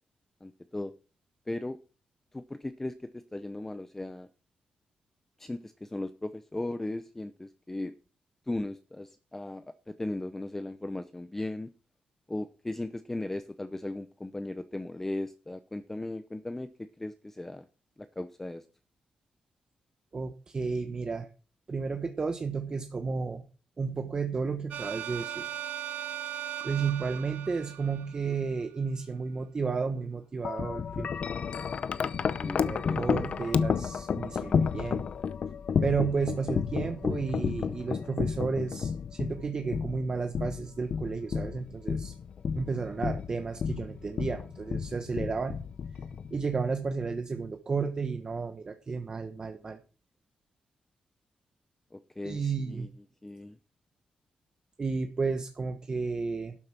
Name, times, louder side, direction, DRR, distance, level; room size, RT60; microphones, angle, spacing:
voice 1, 0.4-0.9 1.5-1.8 2.3-4.3 5.4-7.9 8.5-11.7 12.3-17.7 18.0-18.6 32.4-33.1 51.9-52.9 53.2-53.6, left 2 dB, 15° left, 11 dB, 0.7 m, -37 dB
voice 2, 20.1-21.3 21.7-23.4 23.8-25.5 26.6-31.1 32.6-35.1 35.8-42.1 42.5-45.6 46.3-49.8 52.2-52.9 54.8-56.5, right 4 dB, 30° right, 7 dB, 1.1 m, -32 dB
sound 1, 24.7-28.6, right 12 dB, 85° right, 1.3 m, -38 dB
Wind chime, 30.4-46.6, left 6 dB, 55° left, 0.7 m, -31 dB
12.0 x 7.8 x 5.9 m, 0.37 s
wide cardioid pair, 130°, 2 cm